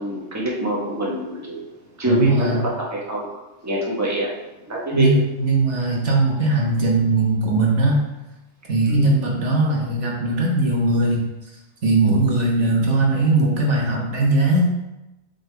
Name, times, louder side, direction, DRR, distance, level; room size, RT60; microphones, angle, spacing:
voice 1, 0.0-1.6 2.0-3.3 3.6-4.3 4.7-5.1 8.9-9.0, equal, 15° right, -4 dB, 1.2 m, -25 dB
voice 2, 2.0-2.6 4.9-8.0 8.7-11.2 11.8-14.7, right 2 dB, 75° right, -2 dB, 1.6 m, -19 dB
7.7 x 4.1 x 3.4 m, 0.99 s
omnidirectional pair, 1.2 m